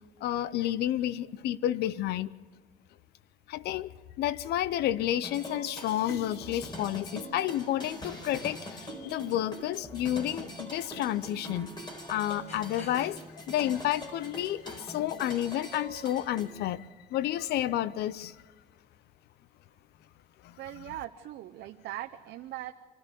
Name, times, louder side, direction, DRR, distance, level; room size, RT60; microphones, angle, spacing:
voice 1, 0.2-2.3 3.5-11.7 12.1-18.4 20.4-20.8, left 12 dB, 75° left, 0.8 m, -31 dB
sound 1, 5.2-16.5, equal, 25° left, 4.6 m, -43 dB
sound 2, 9.5-14.8, left 2 dB, 45° left, 6.2 m, -55 dB
voice 2, 20.6-22.7, right 14 dB, 75° right, 0.8 m, -40 dB
25.0 x 13.5 x 8.4 m
cardioid pair, 110°, 17 cm